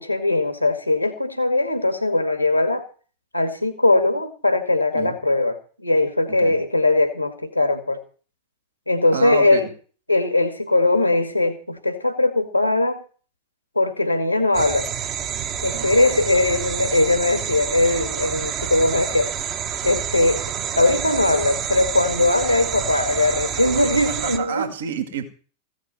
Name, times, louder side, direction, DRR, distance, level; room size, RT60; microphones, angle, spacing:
voice 1, 0.0-2.8 3.3-8.0 8.9-9.7 10.1-13.0 13.8-14.9 15.6-19.3 19.8-20.4 20.8-24.7, left 2 dB, 85° left, 2.2 m, -20 dB
voice 2, 6.3-6.6 9.1-9.6 15.6-15.9 23.7-25.2, right 7 dB, 65° right, 2.0 m, -30 dB
sound 1, 14.5-24.4, right 8 dB, 30° right, 1.3 m, -28 dB
15.5 x 6.6 x 8.8 m
figure-of-eight pair, 90°, 0 cm